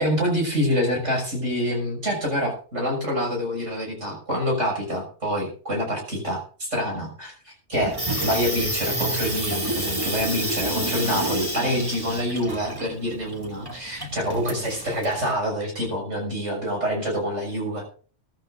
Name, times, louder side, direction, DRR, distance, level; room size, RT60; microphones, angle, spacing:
voice 1, 0.0-8.0 8.2-17.8, equal, 80° right, 0 dB, 6.7 m, -26 dB
Water tap faucet / Sink (filling or washing), 7.7-15.3, right 1 dB, 20° right, 2.3 m, -29 dB
22.5 x 12.0 x 2.6 m, 0.41 s
omnidirectional pair, 1.2 m